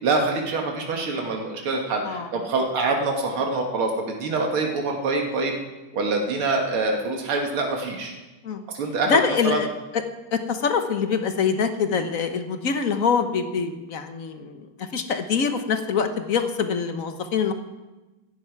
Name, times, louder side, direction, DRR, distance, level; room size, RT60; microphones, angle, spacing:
voice 1, 0.0-5.6 5.9-8.1 8.7-9.2 9.4-9.6, right 3 dB, 90° right, 1 dB, 2.6 m, -25 dB
voice 2, 9.1-9.7 10.3-17.5, left 6 dB, 50° left, 7 dB, 1.2 m, -24 dB
16.0 x 14.0 x 4.7 m, 1.1 s
omnidirectional pair, 2.3 m